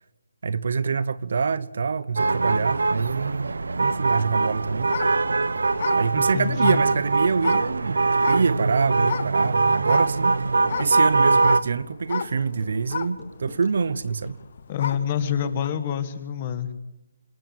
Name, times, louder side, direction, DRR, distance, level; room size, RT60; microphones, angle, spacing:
voice 1, 0.4-3.5 3.8-4.9 5.9-10.4 10.8-14.4, right 5 dB, 45° right, 0.8 m, -25 dB
sound 1, 2.2-11.6, right 3 dB, 85° right, 1.1 m, -22 dB
sound 2, 4.9-7.7 8.2-8.7 9.0-9.4 9.8-15.2 15.6-15.7, left 6 dB, 35° left, 1.2 m, -32 dB
voice 2, 6.2-6.8 14.7-16.7, left 9 dB, 20° left, 1.3 m, -27 dB
sound 3, 9.3-16.0, left 1 dB, ahead, 7.1 m, -47 dB
28.0 x 10.0 x 9.3 m
hypercardioid pair, 175°, 0 cm